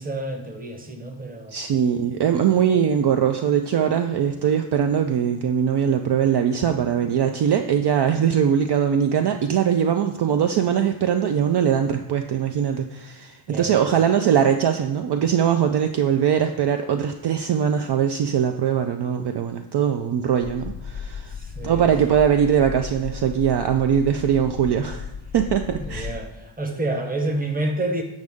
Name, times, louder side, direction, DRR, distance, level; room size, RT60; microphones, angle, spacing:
voice 1, 0.0-1.6 2.2-2.5 13.5-13.9 21.3-21.9 25.8-28.0, right 2 dB, 20° right, 4 dB, 0.9 m, -29 dB
voice 2, 1.5-21.3 21.6-25.1 25.3-26.1, right 8 dB, 55° right, 6 dB, 0.5 m, -21 dB
sound 1, 20.4-26.2, left 6 dB, 85° left, 0.9 m, -35 dB
8.0 x 5.1 x 3.6 m, 0.94 s
cardioid pair, 95°, 48 cm